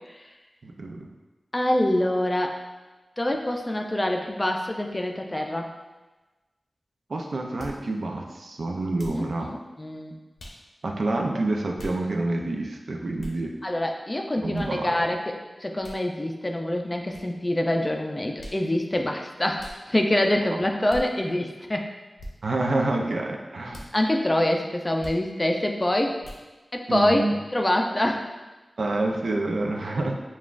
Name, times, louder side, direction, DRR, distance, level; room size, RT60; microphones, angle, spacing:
voice 1, 0.6-1.1 7.1-9.5 10.8-13.5 14.4-15.0 20.5-20.6 22.4-23.8 26.9-27.4 28.8-30.2, right 2 dB, 75° right, 1 dB, 0.5 m, -28 dB
voice 2, 1.5-2.6 3.2-5.7 9.2-10.1 13.6-21.9 23.9-26.2 26.7-27.2 27.5-28.3, left 1 dB, 25° left, 3 dB, 0.4 m, -25 dB
sound 1, 7.6-7.8 9.0-9.3 10.4-10.6 11.8-12.0 13.2-13.4 14.5-14.7 15.8-16.0 17.1-17.3 18.4-18.6 19.6-19.8 20.9-21.0 22.2-22.3 23.7-23.9 25.0-25.2 26.2-26.4, equal, 90° left, 0.7 m, -40 dB
7.1 x 2.4 x 2.4 m, 1.2 s
wide cardioid pair, 95°, 0 cm